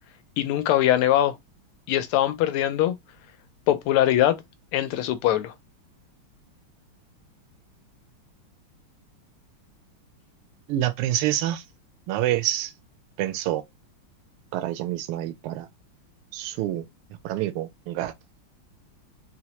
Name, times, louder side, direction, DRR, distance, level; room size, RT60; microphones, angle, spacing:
voice 1, 0.4-1.3 1.9-2.9 3.7-4.4 4.7-5.5, left 12 dB, 85° left, 1.5 m, -22 dB
voice 2, 10.7-11.6 12.1-12.7 13.2-13.6 14.5-15.7 16.3-16.9 17.2-18.1, right 13 dB, 85° right, 1.5 m, -27 dB
4.3 x 2.0 x 2.9 m
omnidirectional pair, 2.3 m